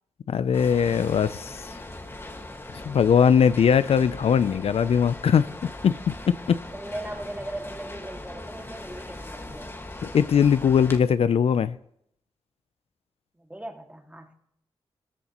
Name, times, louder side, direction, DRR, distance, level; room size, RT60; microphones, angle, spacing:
voice 1, 0.3-1.7 2.8-6.6 10.0-11.8, left 7 dB, 65° left, 15 dB, 0.4 m, -21 dB
sound 1, 0.5-11.0, left 1 dB, 20° left, 1.7 m, -40 dB
voice 2, 6.7-9.7 13.4-14.3, right 1 dB, 15° right, 4 dB, 2.0 m, -38 dB
16.5 x 13.5 x 3.0 m, 0.74 s
cardioid pair, 60°, 11 cm